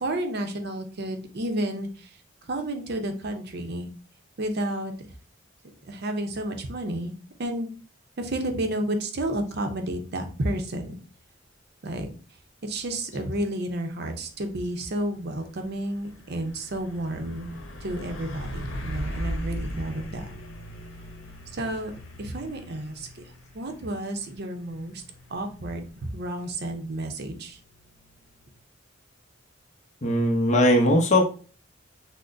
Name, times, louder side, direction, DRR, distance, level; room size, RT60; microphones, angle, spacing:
voice 1, 0.0-2.1 2.5-3.9 4.4-5.1 5.8-7.1 7.4-7.7 8.2-11.0 11.8-12.1 12.6-17.5 17.8-20.3 21.5-21.9 22.2-23.2 23.5-25.0 25.3-25.9 26.1-27.6, right 1 dB, 55° right, 5 dB, 0.6 m, -31 dB
Truck, 14.3-28.6, equal, 85° left, 0.8 m, -39 dB
voice 2, 30.0-31.3, left 1 dB, 35° left, 1 dB, 0.7 m, -19 dB
6.0 x 2.0 x 2.5 m, 0.38 s
head